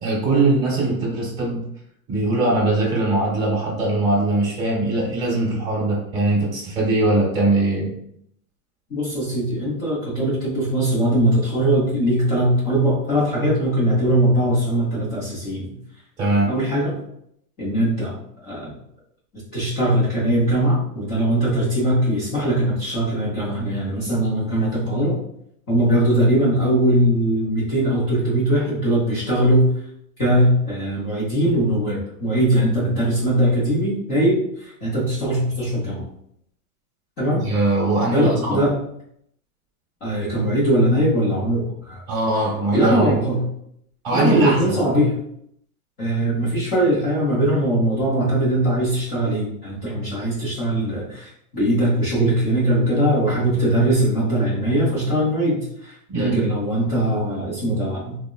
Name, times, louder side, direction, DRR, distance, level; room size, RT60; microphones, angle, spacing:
voice 1, 0.0-1.6 2.1-7.9 16.2-16.5 37.4-38.6 42.1-43.1 44.0-44.8 56.1-56.4, right 2 dB, 10° right, -9 dB, 1.0 m, -21 dB
voice 2, 8.9-15.8 16.5-16.9 17.6-18.8 19.5-25.2 25.7-29.7 30.2-36.1 37.2-37.4 38.1-38.7 40.0-42.0 42.7-43.4 44.1-45.2 46.0-58.2, right 1 dB, 20° left, -9 dB, 0.5 m, -20 dB
3.5 x 2.0 x 2.2 m, 0.71 s
supercardioid pair, 160°, 47 cm